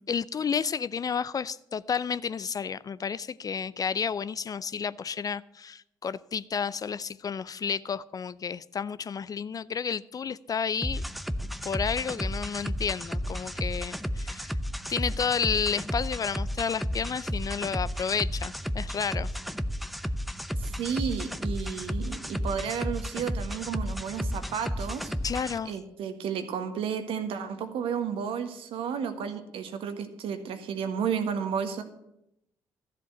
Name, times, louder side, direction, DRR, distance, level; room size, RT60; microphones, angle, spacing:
voice 1, 0.0-11.0 11.6-14.5 14.9-19.3 25.2-25.7, left 6 dB, 35° left, 0.4 m, -31 dB
sound 1, 10.8-25.6, equal, ahead, 0.7 m, -33 dB
voice 2, 20.6-25.1 25.6-31.8, right 7 dB, 60° right, 1.5 m, -32 dB
13.5 x 7.7 x 7.7 m
hypercardioid pair, 45°, 10 cm